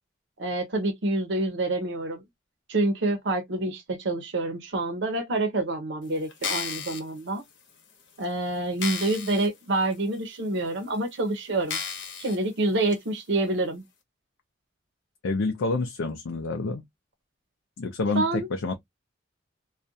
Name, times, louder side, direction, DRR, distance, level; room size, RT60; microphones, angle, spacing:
voice 1, 0.4-2.2 2.7-7.4 8.2-11.8 12.2-13.8 18.1-18.5, right 2 dB, 65° right, 0.7 m, -27 dB
sound 1, 6.3-7.0 7.7-7.8 8.2-8.3 8.8-9.5 9.9-10.0 10.8-10.9 11.7-12.4 12.9-13.0, left 6 dB, 65° left, 0.8 m, -33 dB
voice 2, 15.2-16.8 17.8-18.7, left 3 dB, 85° left, 0.5 m, -28 dB
2.4 x 2.2 x 2.6 m
head